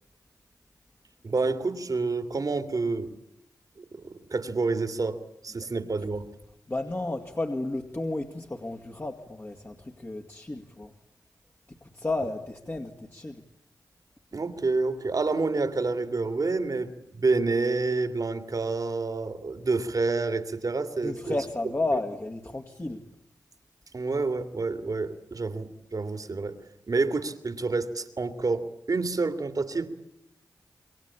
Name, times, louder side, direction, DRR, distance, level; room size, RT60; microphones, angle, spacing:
voice 1, 1.2-3.1 3.8-6.2 14.3-21.4 23.9-26.6 26.9-29.9, right 3 dB, 55° right, 9 dB, 2.4 m, -28 dB
voice 2, 6.7-10.9 11.9-13.4 21.0-23.0, left 2 dB, 35° left, 2 dB, 2.3 m, -32 dB
27.0 x 22.5 x 8.6 m, 0.84 s
cardioid pair, 40°, 7 cm